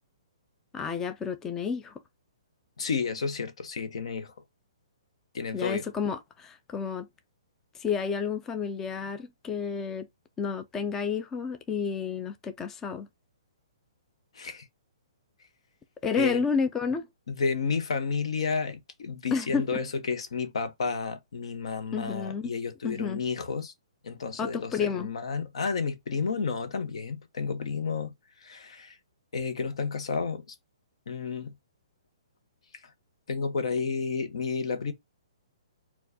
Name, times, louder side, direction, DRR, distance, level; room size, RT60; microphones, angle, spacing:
voice 1, 0.7-2.0 5.5-7.1 7.7-10.1 10.4-13.1 16.0-17.1 19.3-19.8 21.9-22.5 22.8-23.2 24.4-25.1, left 6 dB, 15° left, 0.3 m, -30 dB
voice 2, 2.8-4.3 5.3-5.9 14.3-14.7 16.2-16.4 17.3-23.7 24.0-28.1 28.4-29.0 29.3-30.5 31.1-31.5 33.3-34.9, left 5 dB, 70° left, 0.8 m, -31 dB
4.5 x 2.3 x 2.6 m
hypercardioid pair, 155°, 3 cm